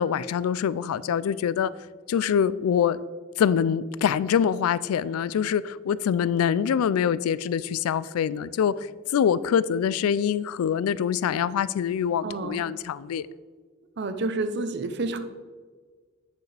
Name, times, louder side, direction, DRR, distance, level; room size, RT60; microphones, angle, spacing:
voice 1, 0.0-1.7 2.1-3.0 3.4-13.3, left 8 dB, 90° left, 17 dB, 0.3 m, -25 dB
voice 2, 12.2-12.7 14.0-15.2, right 3 dB, 55° right, 9 dB, 0.6 m, -29 dB
8.2 x 6.6 x 3.3 m, 1.5 s
head